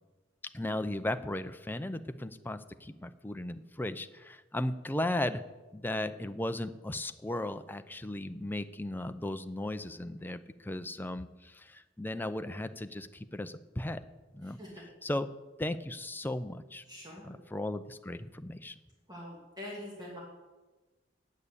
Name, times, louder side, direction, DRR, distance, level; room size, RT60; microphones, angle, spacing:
voice 1, 0.4-5.4 5.7-14.0 14.3-14.6 15.0-15.3 15.6-16.8 17.2-18.8, left 1 dB, 10° left, 9 dB, 0.5 m, -36 dB
voice 2, 14.4-14.8 16.9-17.4 19.1-20.2, left 1 dB, 20° right, -4 dB, 2.5 m, -44 dB
9.1 x 8.5 x 8.2 m, 1.2 s
head